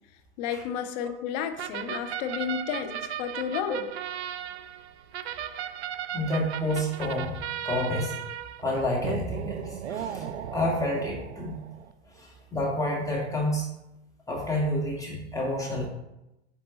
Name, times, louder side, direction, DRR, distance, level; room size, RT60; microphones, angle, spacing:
voice 1, 0.4-3.8, left 8 dB, 45° left, 8 dB, 0.7 m, -32 dB
sound 1, 1.6-11.9, right 9 dB, 70° right, 0.5 m, -36 dB
voice 2, 6.1-7.4 7.6-8.1 8.6-11.6 12.1-13.7 14.3-15.9, left 1 dB, 10° left, -3 dB, 1.7 m, -29 dB
9.4 x 3.7 x 2.9 m, 0.91 s
figure-of-eight pair, 85°, 34 cm